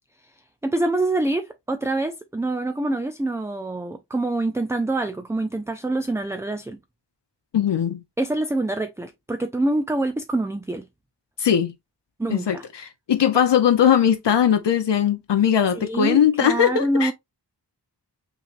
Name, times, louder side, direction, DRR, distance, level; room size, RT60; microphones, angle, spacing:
voice 1, 0.6-6.8 8.2-10.9 12.2-12.7 15.8-17.1, right 2 dB, 5° right, 0.3 m, -25 dB
voice 2, 7.5-8.0 11.4-11.7 12.3-17.1, left 8 dB, 75° left, 0.7 m, -20 dB
5.8 x 3.2 x 2.5 m
wide cardioid pair, 100°, 42 cm